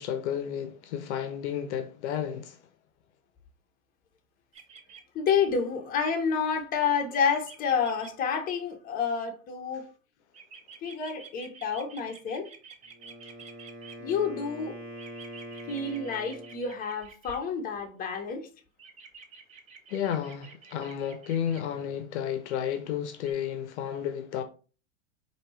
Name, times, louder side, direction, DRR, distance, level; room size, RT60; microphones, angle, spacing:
voice 1, 0.0-2.6 19.9-24.4, left 9 dB, 60° left, 0.6 m, -32 dB
sound 1, 4.5-5.0 7.1-8.1 10.3-13.9 15.0-17.4 18.8-21.6 23.2-23.3, right 6 dB, 20° right, 0.4 m, -49 dB
voice 2, 5.1-9.9 10.8-12.5 14.0-14.7 15.7-18.5, left 6 dB, 20° left, 0.7 m, -29 dB
Wind instrument woodwind instrument, 12.9-16.8, equal, 45° right, 1.6 m, -43 dB
4.3 x 2.7 x 3.1 m
hypercardioid pair, 100°, 41 cm